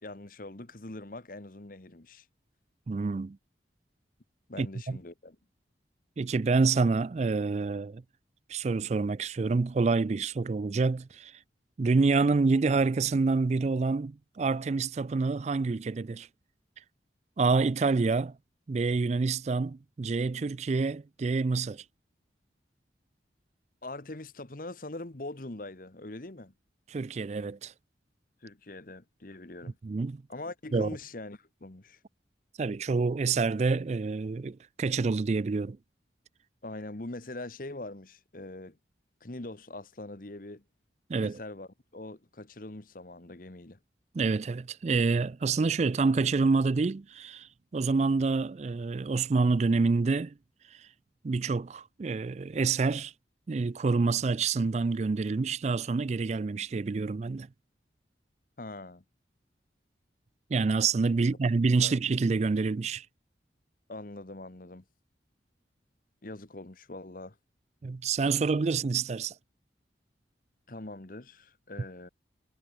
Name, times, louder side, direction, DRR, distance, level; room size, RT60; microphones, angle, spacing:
voice 1, 0.0-2.3 4.5-5.4 23.8-26.5 28.4-29.8 30.3-32.0 36.6-38.8 39.2-40.6 41.2-43.8 58.6-59.0 61.8-61.9 63.9-64.8 66.2-67.4 70.7-72.1, left 2 dB, 50° left, 1.3 m, -42 dB
voice 2, 2.9-3.4 4.6-4.7 6.2-8.0 8.5-11.3 11.8-16.3 17.4-18.4 18.7-21.8 26.9-27.7 29.8-30.2 30.7-30.9 32.6-35.8 41.1-41.4 44.1-50.3 50.7-50.9 51.2-53.1 53.5-57.5 60.5-63.1 67.8-69.3, right 4 dB, 40° right, 0.4 m, -27 dB
head